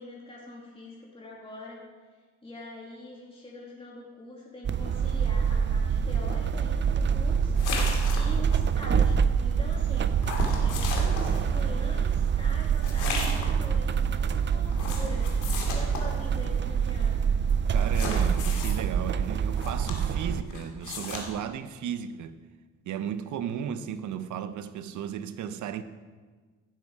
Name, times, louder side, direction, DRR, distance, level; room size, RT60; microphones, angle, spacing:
voice 1, 0.0-1.8 2.4-7.6 8.1-17.3, left 2 dB, 20° left, 2.7 m, -44 dB
sound 1, 4.6-20.4, right 7 dB, 40° right, 0.6 m, -26 dB
sound 2, 7.6-8.6 10.2-11.4 12.8-13.6 14.7-16.1 17.8-18.7 19.5-20.2 20.5-21.2, left 4 dB, 85° left, 2.5 m, -34 dB
voice 2, 17.7-22.4 22.8-25.8, right 8 dB, 75° right, 0.8 m, -35 dB
17.0 x 7.5 x 4.7 m
cardioid pair, 90°, 30 cm